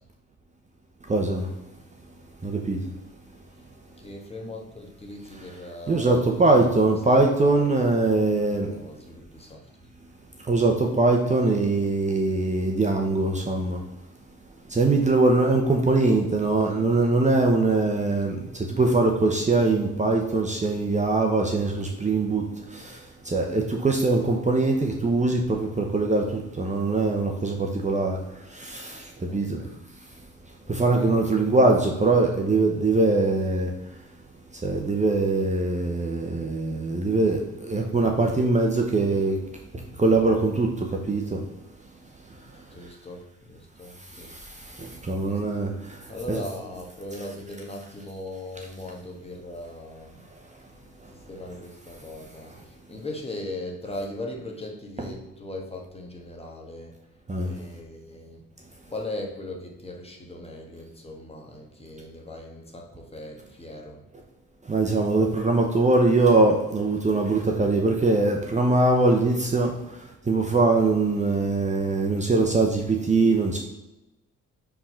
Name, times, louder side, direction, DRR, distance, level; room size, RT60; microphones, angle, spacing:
voice 1, 1.1-1.5 2.4-2.8 5.9-8.7 10.5-13.8 14.7-18.4 18.7-28.2 28.5-29.6 30.7-33.7 34.6-39.4 39.7-41.4 44.3-46.0 46.3-46.4 55.0-55.1 57.3-57.5 64.7-69.7 70.3-73.6, right 3 dB, 25° right, 1 dB, 0.8 m, -22 dB
voice 2, 4.0-7.9 8.5-9.7 16.0-17.2 18.2-18.3 29.3-29.8 30.6-31.2 42.4-44.4 45.2-45.6 46.1-50.3 51.1-57.0 57.4-58.4 58.9-64.0, left 1 dB, 20° left, 0 dB, 1.5 m, -39 dB
4.7 x 3.8 x 5.6 m, 0.98 s
cardioid pair, 90°, 30 cm